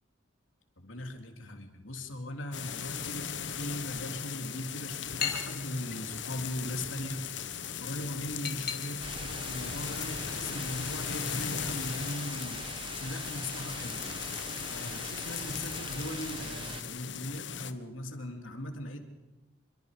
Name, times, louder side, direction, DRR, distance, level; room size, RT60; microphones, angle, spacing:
voice 1, 0.8-3.3 3.6-7.2 7.8-12.6 13.0-14.0 14.7-19.0, left 1 dB, 90° left, 4 dB, 3.1 m, -39 dB
sound 1, 2.5-17.7, left 8 dB, 65° left, 1.2 m, -38 dB
sound 2, 4.4-14.4, left 7 dB, 50° left, 3.2 m, -44 dB
sound 3, 9.0-16.8, right 3 dB, 25° right, 1.4 m, -43 dB
27.0 x 23.5 x 5.2 m, 1.1 s
head